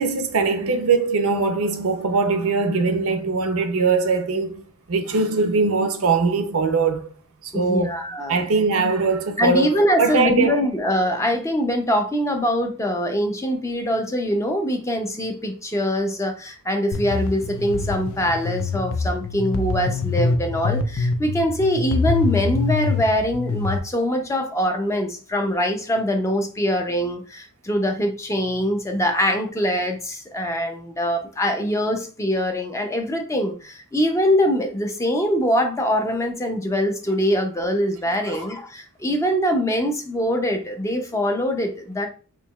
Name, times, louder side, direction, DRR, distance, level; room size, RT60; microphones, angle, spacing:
voice 1, 0.0-4.6 4.9-7.1 7.4-8.0 8.3-10.7 38.3-38.4, right 4 dB, 65° right, 0.6 m, -21 dB
voice 2, 7.5-8.5 9.4-42.1, equal, 15° left, 0.5 m, -23 dB
sound 1, 16.9-23.8, left 3 dB, 65° left, 0.5 m, -25 dB
4.5 x 3.0 x 2.3 m
head